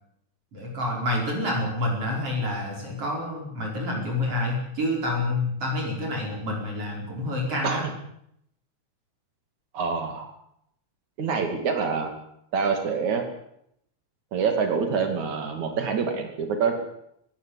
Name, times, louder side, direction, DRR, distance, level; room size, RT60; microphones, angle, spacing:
voice 1, 0.5-7.8, left 1 dB, 50° right, -1 dB, 6.1 m, -28 dB
voice 2, 9.7-10.3 11.2-12.1 12.5-13.2 14.3-16.8, right 5 dB, 80° right, 5 dB, 4.0 m, -26 dB
21.0 x 17.5 x 8.4 m, 0.73 s
omnidirectional pair, 3.3 m